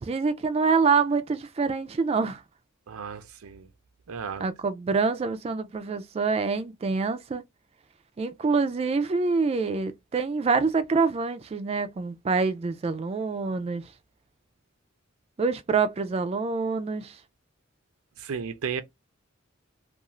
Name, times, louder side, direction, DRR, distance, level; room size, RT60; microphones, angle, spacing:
voice 1, 0.0-2.4 4.4-7.4 8.2-13.8 15.4-17.2, right 4 dB, 30° right, 0.3 m, -26 dB
voice 2, 2.9-3.6 4.1-4.5 18.2-18.8, right 6 dB, 90° right, 0.5 m, -34 dB
2.4 x 2.4 x 2.9 m
head